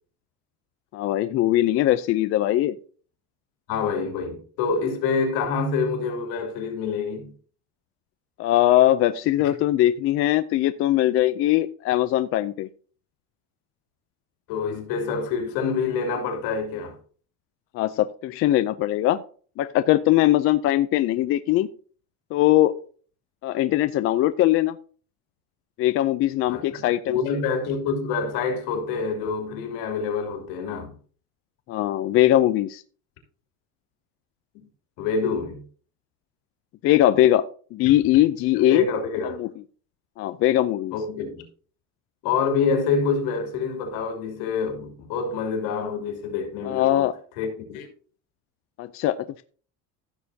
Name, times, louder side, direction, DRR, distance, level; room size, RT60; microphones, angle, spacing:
voice 1, 0.9-2.8 8.4-12.7 17.7-19.2 19.6-21.7 22.3-22.8 23.4-24.8 25.8-27.1 31.7-32.8 36.8-37.5 37.7-38.9 39.4-39.5 40.2-40.9 46.7-47.2 48.8-49.4, left 14 dB, 40° left, 0.4 m, -21 dB
voice 2, 3.7-7.3 14.5-17.0 26.5-30.9 35.0-35.6 38.5-39.4 40.9-41.4 42.2-47.1 47.4-47.9, left 5 dB, 70° left, 2.9 m, -27 dB
15.0 x 6.5 x 2.7 m
cardioid pair, 150°, 35 cm